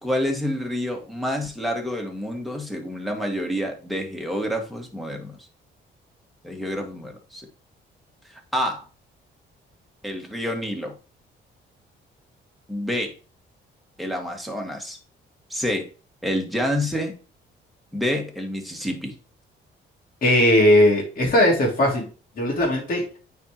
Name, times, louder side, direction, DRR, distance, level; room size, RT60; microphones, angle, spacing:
voice 1, 0.0-5.4 6.4-7.5 8.3-8.8 10.0-10.9 12.7-13.1 14.0-15.0 15.5-15.9 16.2-17.1 17.9-19.1, equal, ahead, 2 dB, 2.1 m, -28 dB
voice 2, 20.2-22.1 22.4-23.0, left 1 dB, 45° left, -3 dB, 2.9 m, -18 dB
9.2 x 4.6 x 3.1 m, 0.36 s
cardioid pair, 90°, 20 cm